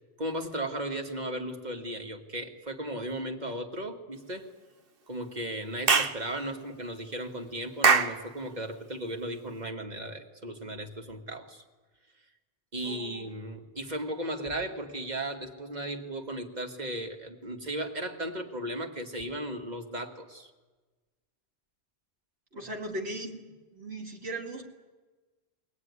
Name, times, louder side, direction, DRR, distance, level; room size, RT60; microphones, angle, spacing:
voice 1, 0.2-4.5 5.1-11.6 12.7-20.5, right 1 dB, 45° right, 4 dB, 1.9 m, -36 dB
Clapping / Chirp tweet, 5.9-6.2 7.8-8.2, right 5 dB, 60° right, 1.3 m, -21 dB
voice 2, 12.8-13.3 22.5-23.4 23.7-24.6, right 1 dB, 85° right, 1 dB, 2.7 m, -38 dB
23.0 x 18.0 x 9.6 m, 1.3 s
omnidirectional pair, 1.1 m